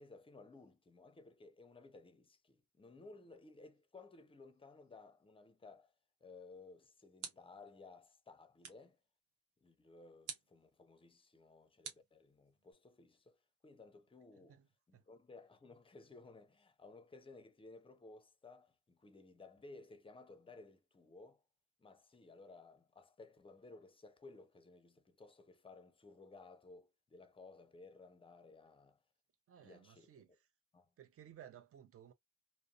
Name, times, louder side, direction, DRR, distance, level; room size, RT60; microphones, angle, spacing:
voice 1, 0.0-5.9 6.2-9.0 9.6-13.4 13.6-14.6 14.9-21.4 21.8-29.0 29.6-30.1 30.7-30.9, left 3 dB, 20° left, 0.6 m, -58 dB
sound 1, 6.5-7.7 8.6-9.0 10.3-10.6 11.8-12.7, right 6 dB, 90° right, 0.9 m, -50 dB
voice 2, 29.5-30.3 31.0-32.1, right 10 dB, 50° right, 0.6 m, -57 dB
2.5 x 2.1 x 2.4 m
cardioid pair, 90°, 30 cm